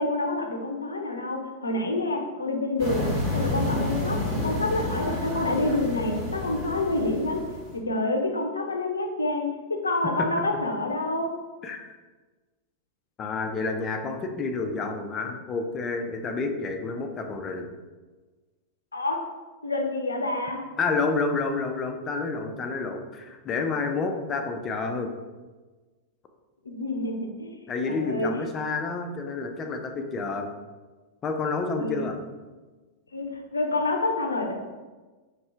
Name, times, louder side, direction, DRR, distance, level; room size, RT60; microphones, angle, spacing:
voice 1, 0.0-3.1 3.3-4.2 4.4-7.4 7.7-11.3 18.9-19.2 19.6-20.6 26.6-28.3 31.8-32.1 33.1-34.5, left 2 dB, 80° left, 2 dB, 0.6 m, -28 dB
sound 1, 2.8-7.8, left 1 dB, 40° right, 1.3 m, -30 dB
voice 2, 13.2-17.7 20.8-25.1 27.7-30.5 31.2-32.2, left 4 dB, 25° left, 5 dB, 0.5 m, -29 dB
4.4 x 3.3 x 3.4 m, 1.3 s
figure-of-eight pair, 90°, 0 cm